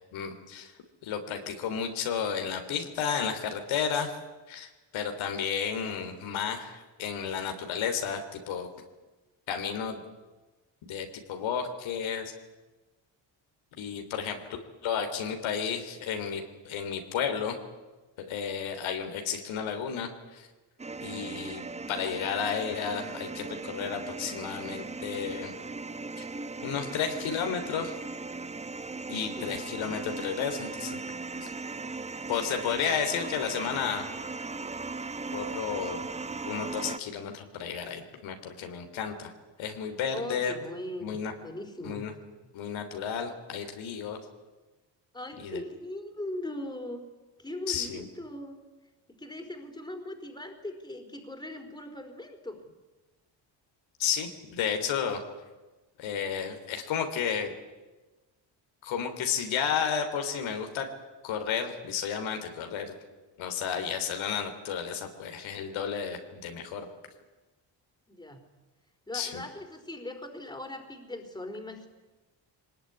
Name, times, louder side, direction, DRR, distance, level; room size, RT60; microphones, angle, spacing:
voice 1, 0.1-0.7 1.0-4.1 4.5-8.7 9.5-10.0 10.8-12.3 13.7-14.4 14.8-17.6 18.3-20.5 21.0-21.6 21.9-25.5 26.2-26.3 26.6-27.9 29.1-31.0 31.4-31.5 32.3-34.0 35.3-36.1 36.4-39.3 39.6-40.5 41.0-41.3 41.8-42.1 42.5-44.2 45.4-45.6 47.7-48.1 54.0-55.2 56.0-57.5 58.8-60.9 61.2-62.9 63.4-66.9 69.1-69.4, left 7 dB, 85° left, 5 dB, 3.4 m, -32 dB
sound 1, 20.8-37.0, right 3 dB, 15° right, 0.9 m, -38 dB
voice 2, 29.1-30.0 35.6-35.7 40.1-42.0 45.1-47.1 47.4-48.6 49.1-52.6 68.1-68.4 69.1-71.9, left 1 dB, 10° left, 3 dB, 4.2 m, -40 dB
23.0 x 19.5 x 9.9 m, 1.2 s
cardioid pair, 95°, 46 cm